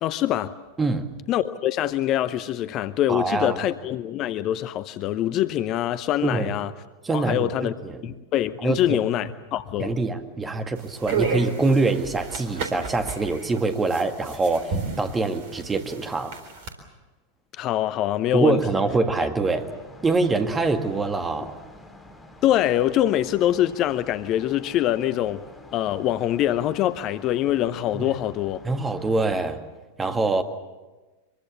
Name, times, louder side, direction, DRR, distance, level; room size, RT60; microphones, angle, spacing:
voice 1, 0.0-0.5 1.3-6.7 7.1-7.7 8.0-9.9 17.6-18.6 22.4-25.4 25.7-28.6, left 12 dB, 35° left, 0.7 m, -24 dB
voice 2, 0.8-1.2 3.1-3.6 6.2-6.5 7.0-8.0 8.6-9.0 9.8-16.4 18.3-19.7 20.0-21.6 27.9-28.2 28.6-29.6 30.0-30.4, right 3 dB, 15° right, 1.9 m, -24 dB
sound 1, 10.8-16.7, right 5 dB, 50° right, 3.9 m, -32 dB
sound 2, 19.4-29.5, left 2 dB, 10° left, 3.3 m, -47 dB
24.5 x 23.0 x 7.2 m
figure-of-eight pair, 90°, 0 cm